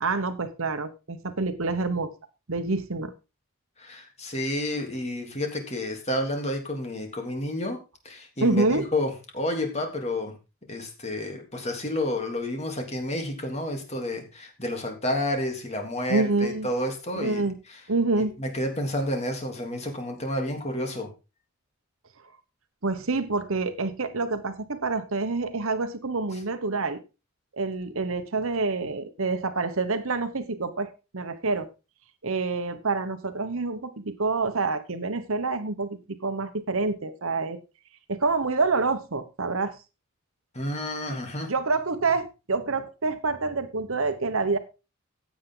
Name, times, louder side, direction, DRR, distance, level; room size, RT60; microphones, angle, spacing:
voice 1, 0.0-2.1 2.5-3.1 8.4-8.9 16.1-16.7 17.2-17.5 17.9-18.3 22.8-27.0 27.5-31.7 32.2-37.6 38.1-39.8 41.5-44.6, right 3 dB, 65° right, 10 dB, 1.1 m, -27 dB
voice 2, 3.8-7.8 8.0-10.3 10.7-17.8 18.2-21.1 26.3-26.4 40.5-41.5, left 1 dB, 30° left, 3 dB, 3.2 m, -30 dB
16.0 x 8.1 x 3.9 m, 0.30 s
head